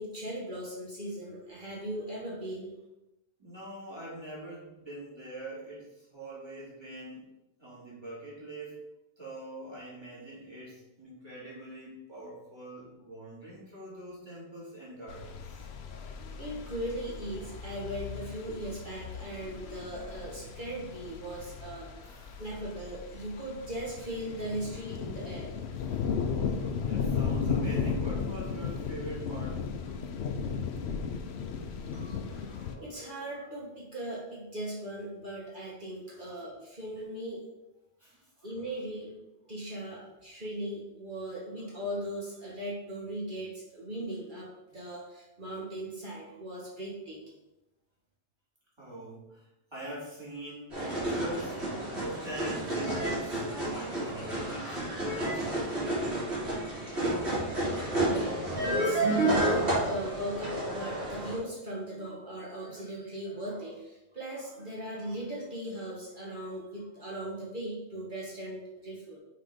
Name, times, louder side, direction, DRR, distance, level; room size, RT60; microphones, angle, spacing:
voice 1, 0.0-2.7 15.9-25.6 31.7-37.5 38.4-39.2 39.5-47.4 57.9-69.2, right 1 dB, 50° right, -4 dB, 1.6 m, -39 dB
voice 2, 3.4-7.3 7.6-8.9 9.2-15.7 22.0-22.4 25.0-25.1 25.8-26.0 26.8-30.2 31.9-32.5 36.2-36.4 38.0-38.3 48.8-56.2, right 1 dB, 25° right, -7 dB, 2.7 m, -44 dB
sound 1, 15.1-32.8, left 6 dB, 75° left, 0.9 m, -35 dB
Soviet Arcade - Circus Pinball Game, 50.7-61.4, right 1 dB, 75° right, 3.0 m, -30 dB
6.2 x 4.2 x 5.1 m, 0.93 s
omnidirectional pair, 1.1 m